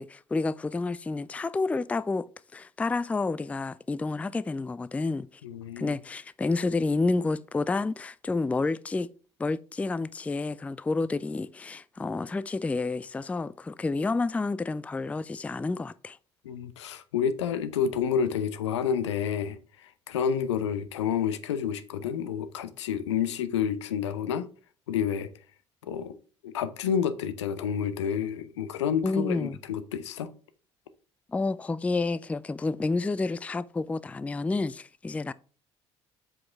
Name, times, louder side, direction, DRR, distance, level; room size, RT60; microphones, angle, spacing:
voice 1, 0.0-5.4 5.8-9.1 9.4-16.2 29.0-29.6 31.3-35.3, left 3 dB, 10° left, 0.3 m, -29 dB
voice 2, 5.4-5.9 16.4-24.5 24.9-25.3 25.8-26.2 26.4-30.3, left 7 dB, 75° left, 0.7 m, -29 dB
7.7 x 6.2 x 3.4 m
figure-of-eight pair, 50°, 15 cm